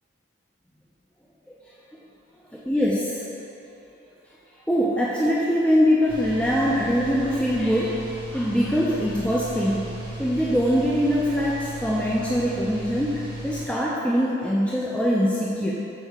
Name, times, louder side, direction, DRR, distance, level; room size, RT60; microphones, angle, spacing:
voice 1, 2.5-3.2 4.7-8.0 8.3-9.9 10.2-15.7, equal, 5° left, -6 dB, 0.4 m, -23 dB
sound 1, 6.1-13.7, right 2 dB, 25° right, 1.5 m, -36 dB
6.4 x 4.4 x 4.9 m, 2.9 s
head